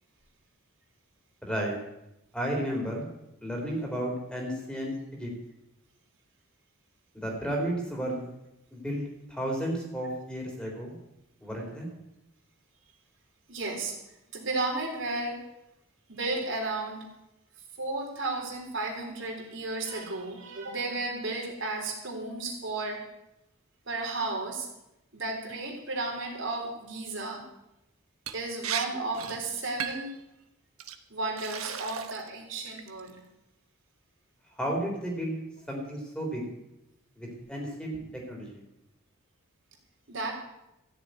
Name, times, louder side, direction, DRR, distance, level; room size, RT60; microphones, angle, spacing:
voice 1, 1.4-1.7 2.3-3.1 3.4-5.3 7.1-8.3 8.7-11.0 11.4-11.9 34.6-35.4 35.7-36.5 37.2-38.6, right 1 dB, 5° left, -1 dB, 3.7 m, -33 dB
voice 2, 13.5-13.9 14.3-15.4 16.1-17.0 17.8-23.0 23.9-24.7 25.1-27.4 28.3-30.1 31.1-33.2 40.1-40.3, right 2 dB, 60° right, 0 dB, 3.8 m, -33 dB
Liquid, 28.3-28.4 28.6-28.8 29.1-29.4 29.8-30.1 30.8-30.9 31.4-32.3 32.6-33.1, right 8 dB, 85° right, 1.2 m, -35 dB
14.5 x 7.0 x 9.4 m, 0.88 s
head